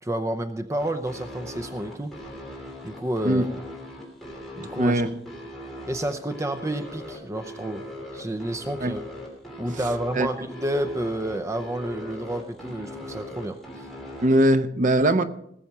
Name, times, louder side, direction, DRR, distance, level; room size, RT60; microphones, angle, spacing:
voice 1, 0.0-2.2 2.8-3.6 4.6-5.0 5.9-7.8 8.1-9.0 9.6-13.9, right 1 dB, 15° right, 10 dB, 0.6 m, -30 dB
sound 1, 0.8-14.3, left 1 dB, ahead, 3.2 m, -39 dB
voice 2, 4.8-5.1 8.8-8.9 10.2-10.3 14.2-15.2, right 1 dB, 45° right, 10 dB, 0.8 m, -20 dB
19.0 x 7.2 x 5.4 m, 0.72 s
head